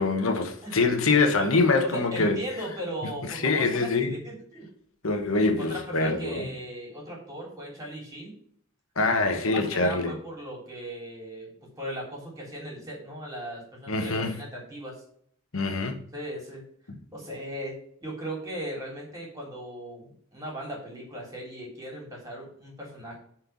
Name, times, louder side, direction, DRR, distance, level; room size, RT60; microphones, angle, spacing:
voice 1, 0.0-2.4 3.3-4.1 5.0-6.5 9.0-10.2 13.9-14.3 15.5-16.0, left 3 dB, 75° left, 1.2 m, -24 dB
voice 2, 1.8-4.7 5.6-8.3 9.2-11.5 11.8-15.0 16.1-16.6 17.1-23.2, right 1 dB, 15° right, 3.6 m, -37 dB
7.7 x 4.5 x 7.1 m
head